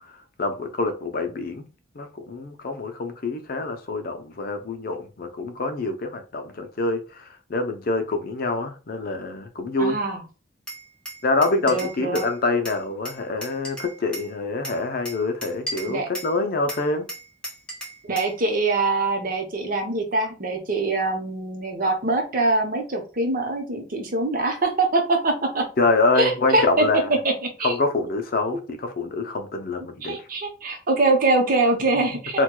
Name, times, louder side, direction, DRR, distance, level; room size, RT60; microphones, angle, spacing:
voice 1, 0.4-1.7 2.0-10.0 11.2-17.1 25.8-27.1 27.6-30.2 32.3-32.4, left 3 dB, 50° left, 0.5 m, -25 dB
voice 2, 9.8-10.2 11.7-12.2 15.9-16.1 18.0-25.6 26.2-26.9 27.2-27.8 30.0-32.4, right 2 dB, 45° right, 0.8 m, -23 dB
Glass, 10.7-12.3 12.6-14.3 14.6-16.3 16.7-18.4, right 1 dB, 5° left, 0.9 m, -36 dB
4.4 x 2.2 x 2.2 m
head